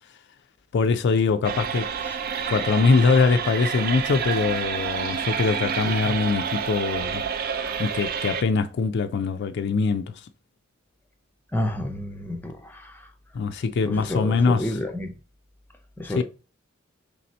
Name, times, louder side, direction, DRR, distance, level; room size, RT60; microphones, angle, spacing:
voice 1, 0.7-1.9 2.5-7.2 7.8-10.1 13.3-14.8 16.1-16.2, left 4 dB, 60° left, 0.3 m, -22 dB
sound 1, 1.4-8.4, right 7 dB, 50° right, 0.4 m, -29 dB
voice 2, 11.5-13.0 13.8-15.1 16.0-16.2, left 1 dB, 10° left, 0.5 m, -30 dB
3.3 x 2.7 x 4.2 m
head